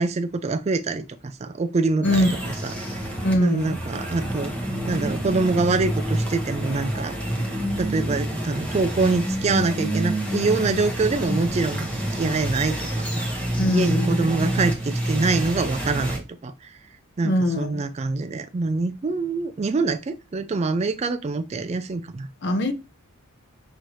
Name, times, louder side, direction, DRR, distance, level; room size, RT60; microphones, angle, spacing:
voice 1, 0.0-2.3 2.6-3.1 3.4-4.5 4.9-7.2 7.8-13.3 13.7-16.8 17.2-22.3, right 3 dB, 30° right, 0.3 m, -25 dB
voice 2, 2.0-2.6 3.2-3.8 13.5-14.2 17.2-17.8 22.4-22.7, left 1 dB, 50° left, 0.7 m, -22 dB
sound 1, 2.0-16.2, right 1 dB, 5° left, 1.0 m, -28 dB
6.2 x 2.6 x 3.0 m
head